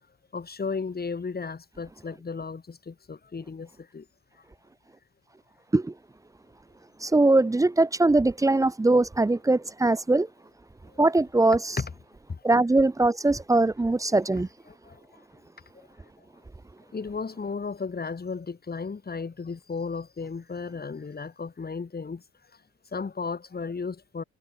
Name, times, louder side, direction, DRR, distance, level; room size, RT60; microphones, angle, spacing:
voice 1, 0.3-4.0 11.8-11.9 12.3-12.4 14.3-14.4 14.9-15.0 16.9-22.2 22.9-24.2, left 5 dB, 30° left, 4.1 m, -34 dB
voice 2, 7.0-10.3 11.0-11.8 12.4-14.5, right 2 dB, 10° right, 0.6 m, -21 dB
cardioid pair, 90°, 30 cm